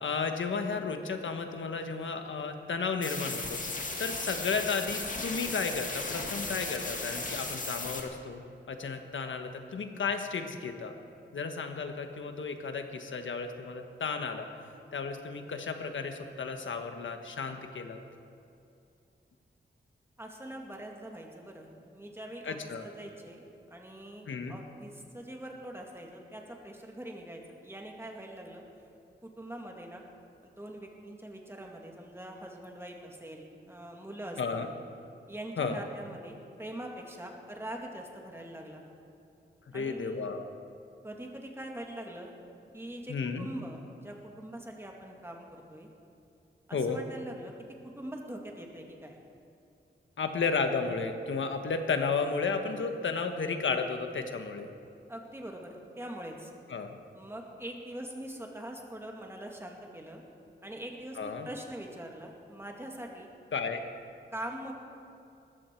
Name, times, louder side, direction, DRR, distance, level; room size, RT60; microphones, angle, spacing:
voice 1, 0.0-3.6 4.0-8.4 8.7-10.9 11.3-14.5 14.9-18.0 22.4-22.8 24.3-24.6 34.4-34.7 35.6-35.8 39.7-40.4 43.1-43.5 46.7-47.0 50.2-54.7 56.7-57.0 61.2-61.5 63.5-63.8, left 5 dB, 90° left, 6 dB, 1.4 m, -33 dB
sound 1, 3.0-8.0, left 3 dB, 45° left, 2.1 m, -36 dB
voice 2, 20.2-22.6 22.8-23.4 23.7-28.6 29.2-30.0 30.4-34.7 35.3-38.8 39.7-40.2 41.0-42.3 42.7-45.9 46.7-47.5 48.0-49.2 55.1-56.5 57.1-60.2 60.6-63.3 64.3-64.7, right 1 dB, 15° right, 1 dB, 2.2 m, -43 dB
20.0 x 14.5 x 4.6 m, 2.6 s
wide cardioid pair, 110°, 19 cm